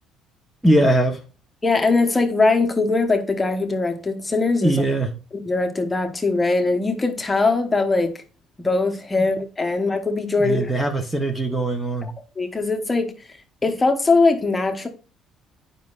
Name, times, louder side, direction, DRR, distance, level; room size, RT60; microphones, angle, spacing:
voice 1, 0.6-1.2 4.6-5.1 10.4-12.1, right 1 dB, 5° right, 0.9 m, -20 dB
voice 2, 1.6-4.8 5.4-8.1 8.6-10.7 12.0-12.1 12.4-13.1 13.6-14.9, left 3 dB, 15° left, 1.1 m, -21 dB
9.1 x 5.3 x 2.5 m
cardioid pair, 115°, 0 cm